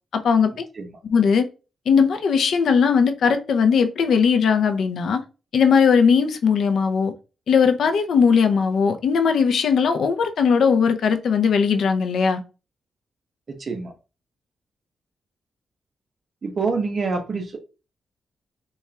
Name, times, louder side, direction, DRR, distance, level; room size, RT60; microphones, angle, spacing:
voice 1, 0.1-0.5 1.1-1.5 1.9-5.2 5.5-7.1 7.5-12.4, left 6 dB, 75° left, 0.5 m, -19 dB
voice 2, 13.5-13.9 16.4-17.6, right 4 dB, 40° right, 0.7 m, -26 dB
4.2 x 2.3 x 3.3 m
wide cardioid pair, 140°, 0 cm